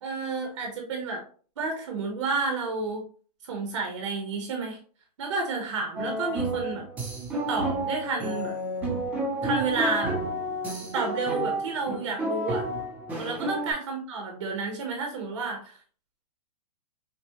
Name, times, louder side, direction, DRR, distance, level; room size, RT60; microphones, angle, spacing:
voice 1, 0.0-1.2 1.6-3.0 3.4-4.8 5.2-6.8 7.5-8.5 9.4-10.2 10.8-12.7 13.2-15.8, right 4 dB, 45° right, 2 dB, 1.1 m, -30 dB
sound 1, 6.0-13.7, right 1 dB, 5° right, 0.6 m, -30 dB
6.0 x 2.3 x 2.9 m, 0.42 s
hypercardioid pair, 175°, 21 cm